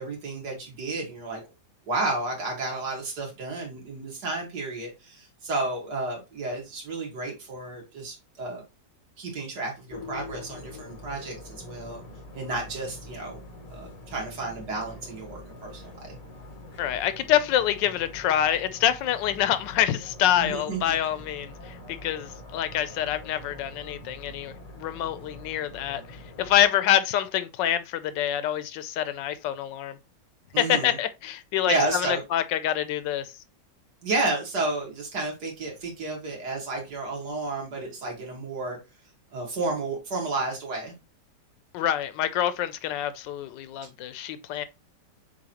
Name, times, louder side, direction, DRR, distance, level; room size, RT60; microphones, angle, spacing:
voice 1, 0.0-1.4 1.9-8.6 9.2-12.0 12.3-13.4 13.7-16.2 20.4-21.0 30.5-31.0 31.7-32.2 34.0-38.8 39.3-40.9, right 2 dB, 65° right, 2.2 m, -31 dB
sound 1, 9.9-26.7, left 2 dB, 40° left, 0.5 m, -45 dB
voice 2, 16.8-30.0 30.6-33.3 41.7-44.6, left 11 dB, 85° left, 1.2 m, -26 dB
7.0 x 2.6 x 2.8 m
omnidirectional pair, 1.9 m